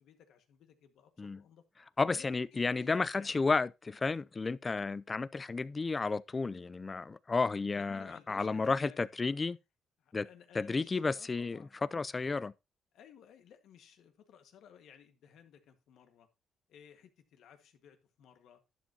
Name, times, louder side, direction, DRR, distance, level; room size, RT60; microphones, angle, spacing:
voice 1, 0.0-1.6 2.1-3.3 7.7-9.0 10.0-11.7 12.9-16.3 16.7-18.6, left 8 dB, 80° left, 1.7 m, -57 dB
voice 2, 2.0-9.6 10.1-10.3 10.5-12.5, left 4 dB, 30° left, 0.4 m, -32 dB
11.5 x 8.1 x 2.9 m
cardioid pair, 90°, 0 cm